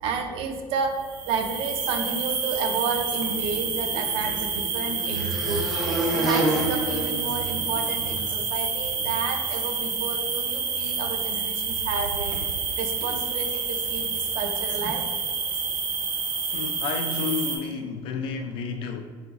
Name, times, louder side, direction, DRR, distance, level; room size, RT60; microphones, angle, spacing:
voice 1, 0.0-15.1, right 5 dB, 65° right, 5 dB, 0.5 m, -31 dB
sound 1, 1.0-17.6, right 5 dB, 45° right, 0.9 m, -29 dB
sound 2, 3.4-8.0, right 1 dB, ahead, 0.6 m, -29 dB
voice 2, 16.5-19.0, left 5 dB, 60° left, 6 dB, 0.4 m, -31 dB
4.8 x 3.8 x 2.4 m, 1.5 s
cardioid pair, 170°, 10 cm